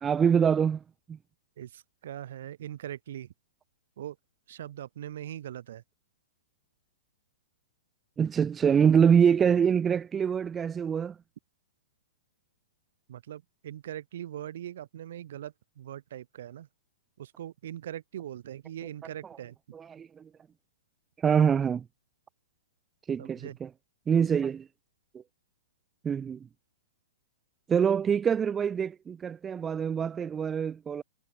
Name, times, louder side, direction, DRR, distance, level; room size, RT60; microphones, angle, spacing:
voice 1, 0.0-0.8 1.1-1.2 8.2-11.1 19.7-20.1 21.2-21.8 23.1-23.7 24.1-24.6 26.0-26.4 27.7-31.0, right 7 dB, 15° right, 2.7 m, -25 dB
voice 2, 1.6-3.3 4.0-4.2 4.5-5.8 13.1-16.7 17.2-19.6 23.2-23.6 24.2-24.3, right 11 dB, 65° right, 5.3 m, -41 dB
hypercardioid pair, 140°, 0 cm